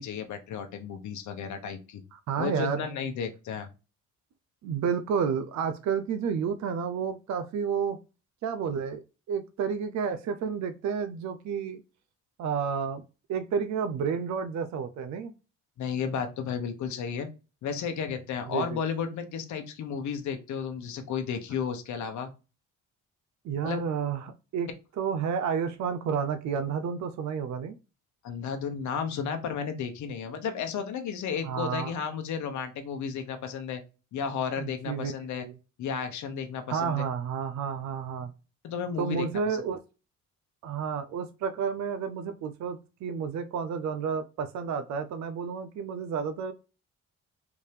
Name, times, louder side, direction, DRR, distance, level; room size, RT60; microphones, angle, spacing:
voice 1, 0.0-2.0 2.4-3.7 15.8-17.3 17.6-22.3 23.6-23.8 28.2-33.8 34.1-35.5 35.8-37.1 38.6-39.6, left 6 dB, 70° left, 6 dB, 0.9 m, -33 dB
voice 2, 2.3-2.9 4.6-8.0 8.4-9.0 9.3-11.8 12.4-13.0 13.3-15.3 18.5-18.8 23.4-24.7 25.0-27.7 31.4-31.9 34.6-35.1 35.4-35.5 36.7-38.3 39.0-39.8 40.6-46.5, right 6 dB, 65° right, 8 dB, 0.6 m, -30 dB
3.4 x 2.7 x 3.3 m, 0.30 s
cardioid pair, 90°, 30 cm